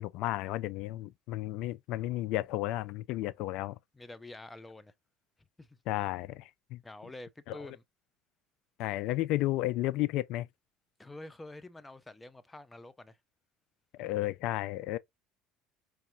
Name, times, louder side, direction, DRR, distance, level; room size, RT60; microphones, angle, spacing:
voice 1, 0.0-3.8 5.9-6.8 7.5-7.6 8.8-10.5 14.0-15.0, left 16 dB, 65° left, 0.3 m, -33 dB
voice 2, 3.9-4.9 5.6-5.8 6.8-7.8 11.0-13.2, left 2 dB, 15° left, 0.5 m, -47 dB
4.7 x 2.8 x 2.7 m
supercardioid pair, 90°, 0 cm